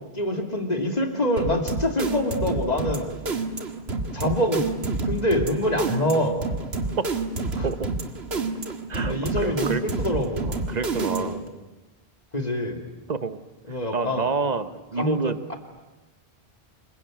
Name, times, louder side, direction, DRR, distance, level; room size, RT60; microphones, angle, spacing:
voice 1, 0.1-3.1 4.1-4.6 5.0-6.4 7.5-7.7 9.0-10.6 11.1-11.4 12.3-12.8 13.7-14.3 15.0-15.2 15.5-15.6, left 1 dB, 40° left, 4 dB, 3.0 m, -25 dB
sound 1, 1.4-11.5, right 3 dB, 75° right, 2.2 m, -29 dB
voice 2, 8.9-9.8 10.4-11.4 13.1-13.4 13.9-15.5, right 4 dB, 40° right, 12 dB, 1.2 m, -28 dB
27.0 x 22.5 x 9.2 m, 1.1 s
omnidirectional pair, 1.1 m